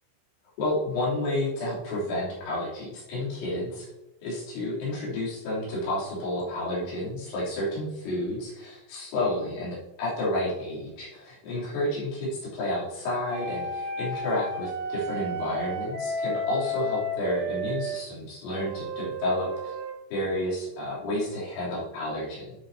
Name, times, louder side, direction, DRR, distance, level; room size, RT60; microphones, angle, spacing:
voice 1, 0.6-3.9 4.2-19.8 20.1-22.6, left 1 dB, 80° left, -8 dB, 5.8 m, -30 dB
sound 1, 13.3-18.0 18.6-19.9, equal, 85° right, 4.0 m, -32 dB
13.0 x 7.5 x 2.8 m, 0.99 s
omnidirectional pair, 5.2 m